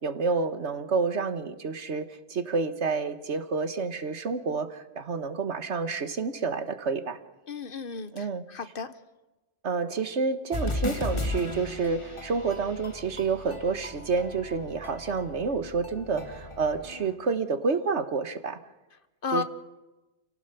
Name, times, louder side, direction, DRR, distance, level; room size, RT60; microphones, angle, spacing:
voice 1, 0.0-7.2 8.1-8.4 9.6-18.6 19.3-19.4, right 4 dB, 85° right, 11 dB, 1.6 m, -29 dB
voice 2, 7.5-8.9 19.2-19.4, left 5 dB, 55° left, 12 dB, 1.3 m, -33 dB
sound 1, 10.5-17.1, left 2 dB, 25° left, 1.8 m, -36 dB
28.0 x 17.5 x 6.9 m, 1.1 s
omnidirectional pair, 1.1 m